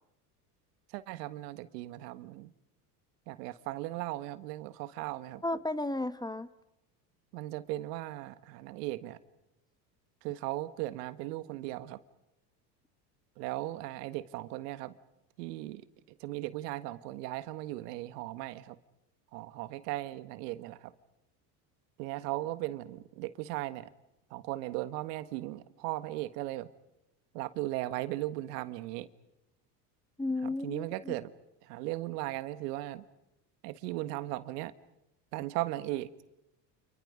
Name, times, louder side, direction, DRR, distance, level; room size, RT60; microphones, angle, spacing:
voice 1, 0.9-2.5 3.3-5.4 7.3-9.2 10.2-12.0 13.4-14.9 15.4-15.8 16.2-18.8 19.3-20.9 22.0-23.9 24.3-26.7 27.3-29.1 30.4-31.3 31.6-33.0 33.6-34.7 35.3-36.1, right 17 dB, 70° right, 13 dB, 1.6 m, -37 dB
voice 2, 5.4-6.5 30.2-31.1, left 2 dB, 10° left, 14 dB, 1.2 m, -33 dB
30.0 x 29.0 x 5.1 m, 0.90 s
hypercardioid pair, 90°, 49 cm